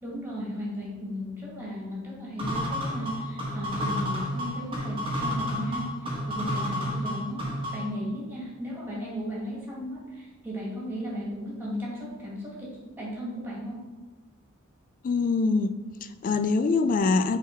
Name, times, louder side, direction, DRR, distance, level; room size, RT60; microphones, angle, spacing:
voice 1, 0.0-7.4 7.7-13.8, equal, 10° right, -6 dB, 2.0 m, -35 dB
sound 1, 2.4-7.9, equal, 25° right, 1.2 m, -31 dB
voice 2, 15.0-17.4, left 4 dB, 40° left, 11 dB, 0.3 m, -24 dB
5.7 x 3.8 x 4.6 m, 1.3 s
head